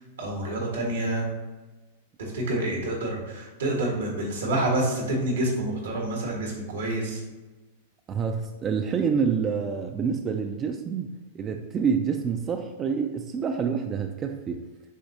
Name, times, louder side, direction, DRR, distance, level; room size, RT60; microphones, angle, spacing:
voice 1, 0.2-1.2 2.2-7.2, right 1 dB, 85° right, -1 dB, 1.4 m, -28 dB
voice 2, 8.1-14.6, right 6 dB, 30° right, 5 dB, 0.3 m, -27 dB
6.9 x 2.6 x 2.7 m, 1.2 s
hypercardioid pair, 110°, 0 cm